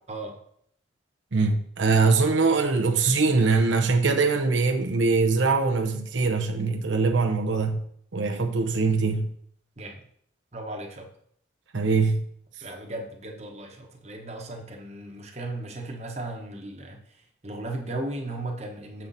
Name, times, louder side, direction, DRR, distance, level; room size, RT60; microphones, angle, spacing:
voice 1, 1.3-7.8 8.1-9.3 11.7-12.2, right 4 dB, 90° right, 3 dB, 0.8 m, -22 dB
voice 2, 10.5-11.1 12.6-17.2 17.4-19.1, right 2 dB, 35° right, 2 dB, 1.0 m, -36 dB
7.2 x 5.7 x 4.0 m, 0.66 s
head